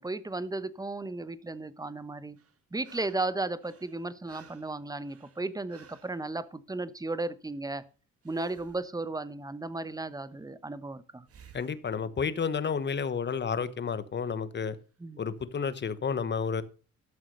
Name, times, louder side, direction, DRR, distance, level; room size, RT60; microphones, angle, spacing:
voice 1, 0.0-2.4 2.7-7.8 8.2-11.3 15.0-15.2, right 2 dB, 10° right, 0.9 m, -35 dB
sound 1, 2.4-3.3 3.6-6.2 8.2-8.9 11.3-11.8 14.7-14.8, right 7 dB, 50° right, 1.8 m, -54 dB
voice 2, 11.5-14.8 15.2-16.6, left 6 dB, 35° left, 1.1 m, -31 dB
13.0 x 6.2 x 5.3 m
cardioid pair, 90°, 30 cm